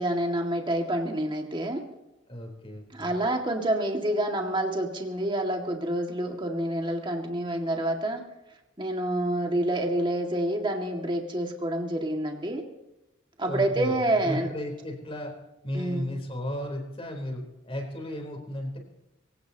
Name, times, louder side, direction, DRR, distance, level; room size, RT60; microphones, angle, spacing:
voice 1, 0.0-1.9 2.9-8.2 8.8-12.6 13.4-14.5 15.7-16.1, right 1 dB, 25° right, 2 dB, 2.0 m, -28 dB
voice 2, 2.3-3.1 13.5-15.4 15.6-18.8, left 1 dB, 30° left, 1 dB, 3.7 m, -34 dB
24.0 x 17.0 x 2.9 m, 0.95 s
head